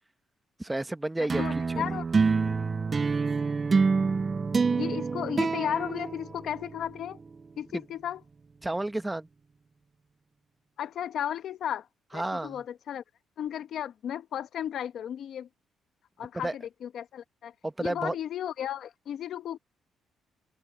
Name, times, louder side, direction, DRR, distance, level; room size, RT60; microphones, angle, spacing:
voice 1, 0.6-2.0 7.7-7.8 8.6-9.3 12.1-12.6 16.4-16.5 17.6-18.1, right 2 dB, 15° right, 1.4 m, -31 dB
voice 2, 1.2-2.0 4.7-7.2 7.6-8.2 10.8-11.9 12.1-13.0 13.4-15.5 16.2-17.5 17.8-19.6, left 10 dB, 70° left, 1.4 m, -34 dB
sound 1, 1.3-6.9, right 4 dB, 35° right, 0.4 m, -27 dB
open air
cardioid pair, 90°, 0 cm